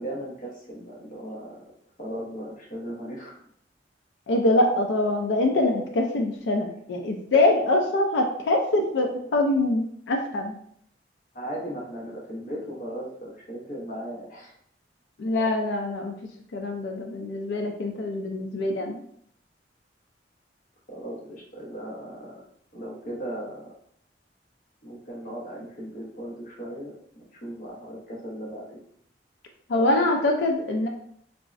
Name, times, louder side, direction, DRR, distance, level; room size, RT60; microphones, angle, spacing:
voice 1, 0.0-1.6 2.0-3.3 11.3-14.5 20.9-22.4 22.7-23.7 24.8-28.8, right 1 dB, 50° left, -3 dB, 0.8 m, -37 dB
voice 2, 4.3-10.6 15.2-16.2 16.5-19.0 29.7-30.9, left 2 dB, 75° left, 3 dB, 0.4 m, -24 dB
3.5 x 2.0 x 2.4 m, 0.66 s
head